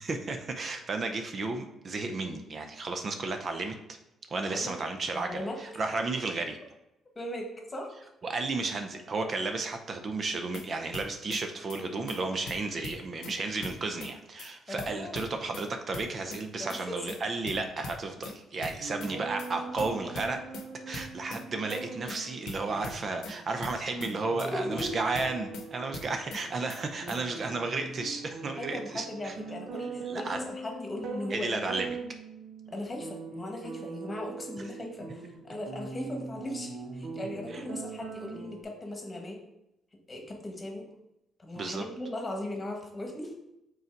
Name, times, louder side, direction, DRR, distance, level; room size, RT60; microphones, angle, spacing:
voice 1, 0.0-3.8 4.3-6.6 8.2-20.4 20.9-29.3 30.1-30.4 31.3-32.0 37.5-37.6 41.6-41.8, right 3 dB, 45° right, 6 dB, 0.6 m, -33 dB
voice 2, 4.4-4.7 5.1-5.5 7.1-8.1 8.4-8.5 14.7-15.2 16.6-17.0 19.7-20.1 24.4-24.9 28.6-31.6 32.7-39.4 40.1-40.9 41.4-43.3, left 1 dB, 25° left, 2 dB, 1.3 m, -38 dB
sound 1, 10.3-10.7 10.9-11.4 11.7-11.8 12.1-12.2 12.5-13.4 13.6-14.1 14.4-14.5 14.8-15.7 15.9-16.4 16.7-16.8 17.1-17.2 17.5-18.3 18.6-19.1 19.4-19.5 19.8-20.7 20.9-21.4 21.7-21.8 22.1-22.2 22.5-23.3 23.6-24.1 24.4-24.5 24.8-25.7 25.9-26.4 26.7-26.8 27.1-27.2, left 3 dB, 80° left, 0.8 m, -41 dB
sound 2, 18.8-38.6, right 4 dB, 80° right, 1.0 m, -42 dB
5.4 x 3.9 x 4.5 m, 0.88 s
cardioid pair, 90°, 0 cm